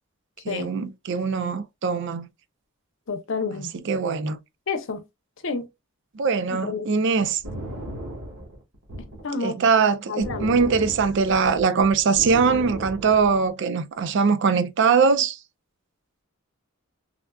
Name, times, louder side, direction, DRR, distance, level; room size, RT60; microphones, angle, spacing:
voice 1, 0.5-2.3 3.8-4.4 6.1-7.4 9.4-15.4, right 5 dB, 55° right, 0.4 m, -22 dB
voice 2, 3.1-3.7 4.7-5.0 5.4-5.7 6.5-7.0 9.2-9.5 10.1-10.6, left 4 dB, 60° left, 0.6 m, -29 dB
sound 1, 7.4-9.3 10.2-13.5, right 1 dB, 85° right, 1.3 m, -35 dB
3.5 x 2.4 x 2.2 m
head